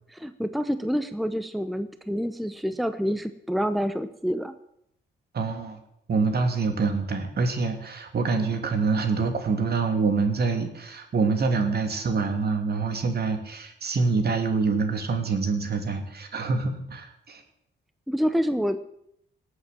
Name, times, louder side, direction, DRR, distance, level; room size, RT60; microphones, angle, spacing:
voice 1, 0.1-4.5 18.1-18.8, equal, ahead, 10 dB, 0.9 m, -27 dB
voice 2, 5.3-5.8 6.1-17.4, right 4 dB, 55° right, 6 dB, 2.8 m, -26 dB
18.0 x 8.1 x 7.6 m, 0.75 s
cardioid pair, 80°, 20 cm